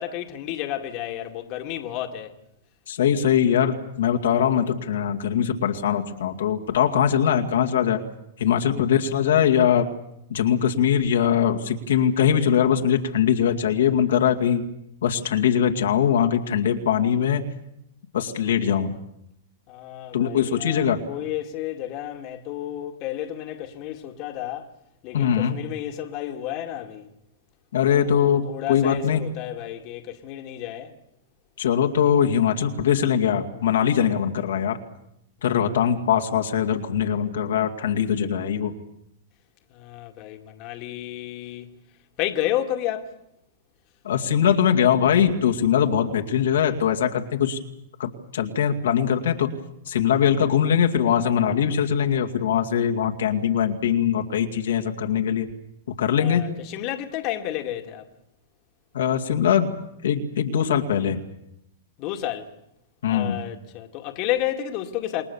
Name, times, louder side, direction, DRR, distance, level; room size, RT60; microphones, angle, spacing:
voice 1, 0.0-2.3 8.6-8.9 19.7-24.7 25.0-27.1 27.9-31.0 39.7-41.7 42.2-43.1 56.2-58.1 62.0-62.5 63.1-65.2, left 12 dB, 45° left, 2.2 m, -31 dB
voice 2, 2.9-8.0 8.4-9.9 10.3-14.6 15.0-17.4 18.1-18.9 20.1-21.0 25.1-25.6 27.7-29.2 31.6-34.8 35.4-38.7 44.0-47.6 48.0-49.5 49.9-55.5 55.9-56.4 58.9-59.7 60.0-61.2 63.0-63.4, left 8 dB, 75° left, 2.3 m, -21 dB
28.5 x 20.0 x 7.2 m
hypercardioid pair, 120°, 0 cm